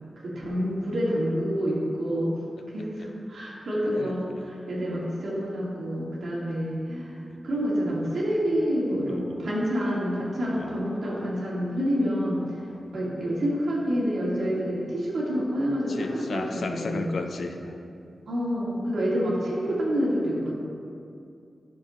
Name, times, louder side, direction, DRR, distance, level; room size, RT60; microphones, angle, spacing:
voice 1, 0.2-2.3 2.7-7.1 7.4-12.4 12.9-17.1 18.3-20.6, equal, 90° right, -6 dB, 2.1 m, -28 dB
voice 2, 9.1-9.4 10.4-10.8 12.6-12.9 15.9-17.8, left 3 dB, 80° left, 5 dB, 0.7 m, -35 dB
12.5 x 6.8 x 3.1 m, 2.5 s
wide cardioid pair, 125°, 0 cm